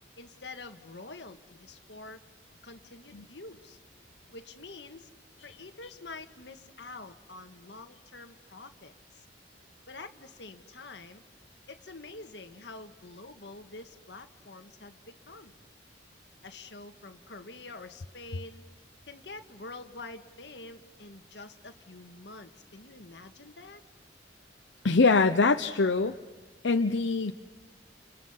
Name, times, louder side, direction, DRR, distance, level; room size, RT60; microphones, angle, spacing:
voice 1, 0.2-2.2 2.6-3.8 4.3-5.1 5.4-9.2 9.9-11.2 11.7-15.5 16.4-18.6 19.0-23.8, left 3 dB, 70° left, 7 dB, 1.7 m, -46 dB
voice 2, 24.8-26.2 26.6-27.3, left 3 dB, 85° left, 7 dB, 0.8 m, -23 dB
30.0 x 29.5 x 5.7 m, 1.4 s
head